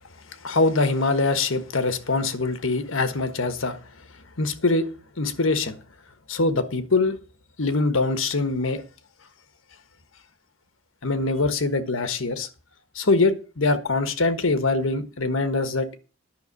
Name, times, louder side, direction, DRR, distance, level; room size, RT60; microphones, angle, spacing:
voice 1, 0.4-3.8 4.4-4.9 5.2-5.8 6.3-7.2 7.6-8.8 11.0-12.5 12.9-16.0, left 3 dB, 80° left, 1.4 m, -23 dB
10.5 x 6.1 x 6.8 m
head